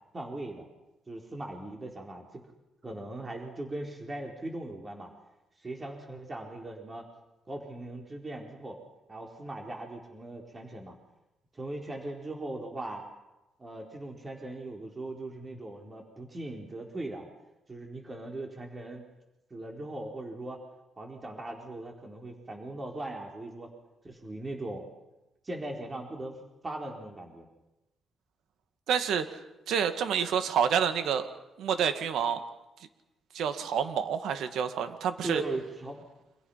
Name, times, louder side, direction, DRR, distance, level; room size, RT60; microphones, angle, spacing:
voice 1, 0.1-0.7 1.1-2.4 2.8-5.1 5.6-7.1 7.5-8.8 9.1-11.0 11.5-13.0 13.6-17.3 17.7-19.0 19.5-20.6 21.0-23.7 24.0-24.8 25.4-26.4 26.6-27.5 35.2-36.0, right 2 dB, 25° right, 1 dB, 4.5 m, -39 dB
voice 2, 28.9-29.3 29.7-31.3 31.6-32.4 33.3-35.4, right 7 dB, 80° right, 8 dB, 2.1 m, -28 dB
30.0 x 26.0 x 5.8 m, 0.99 s
cardioid pair, 105°, 0 cm